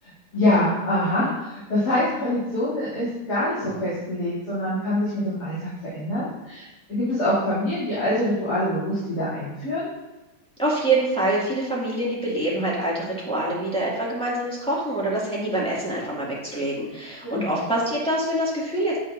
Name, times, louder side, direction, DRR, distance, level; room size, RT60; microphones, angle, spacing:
voice 1, 0.0-9.8 17.2-17.5, left 1 dB, 70° left, -11 dB, 3.2 m, -25 dB
voice 2, 10.6-19.0, right 1 dB, 5° left, -7 dB, 2.1 m, -25 dB
8.9 x 7.8 x 2.6 m, 1.1 s
omnidirectional pair, 1.8 m